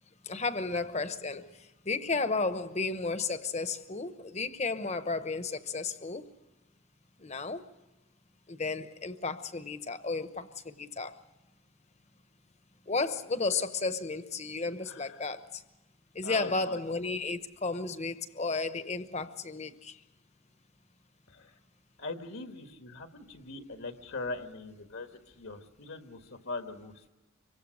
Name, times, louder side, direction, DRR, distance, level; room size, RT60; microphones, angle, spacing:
voice 1, 0.3-1.6 1.8-6.3 7.2-7.6 8.5-11.2 12.9-15.6 16.1-20.0, left 3 dB, 30° left, 1.0 m, -33 dB
voice 2, 14.9-15.2 16.2-16.8 21.3-21.6 22.0-27.1, left 2 dB, 70° left, 1.5 m, -41 dB
25.5 x 24.0 x 6.4 m
head